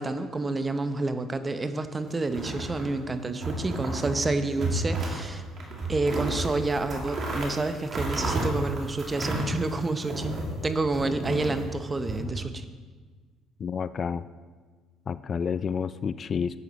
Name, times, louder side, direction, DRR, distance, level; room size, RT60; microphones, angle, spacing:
voice 1, 0.0-5.4 5.9-12.6, right 2 dB, 25° right, 10 dB, 0.8 m, -29 dB
sound 1, 2.3-3.0 3.4-4.2 4.5-5.2 5.6-10.5 10.9-12.2, right 2 dB, 50° right, 2.4 m, -31 dB
voice 2, 13.6-14.3 15.1-16.6, left 6 dB, 45° left, 15 dB, 0.3 m, -29 dB
10.5 x 8.1 x 4.1 m, 1.5 s
supercardioid pair, 75°, 0 cm